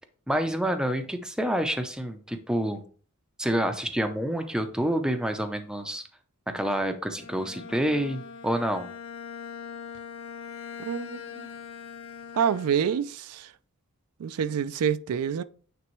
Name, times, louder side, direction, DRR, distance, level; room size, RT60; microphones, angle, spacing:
voice 1, 0.3-2.8 3.4-6.0 6.5-8.9, right 1 dB, 5° right, 0.5 m, -28 dB
Bowed string instrument, 7.1-13.2, left 6 dB, 60° left, 0.9 m, -42 dB
voice 2, 10.9-11.5 12.3-13.5 14.2-15.4, right 7 dB, 75° right, 0.4 m, -27 dB
9.0 x 3.4 x 3.1 m
head